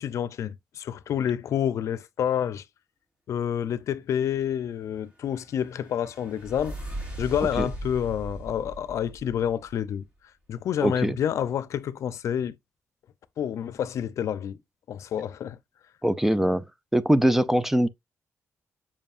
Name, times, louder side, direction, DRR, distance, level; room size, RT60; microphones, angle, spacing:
voice 1, 0.0-2.6 3.3-6.8 7.2-10.0 10.5-12.5 13.4-14.6 14.9-15.6, left 9 dB, 75° left, 0.6 m, -28 dB
sound 1, 4.9-9.9, right 1 dB, 25° right, 3.8 m, -39 dB
voice 2, 10.8-11.2 16.0-16.6 16.9-17.9, right 1 dB, 5° right, 0.4 m, -22 dB
7.4 x 4.9 x 2.5 m
wide cardioid pair, 145°, 5 cm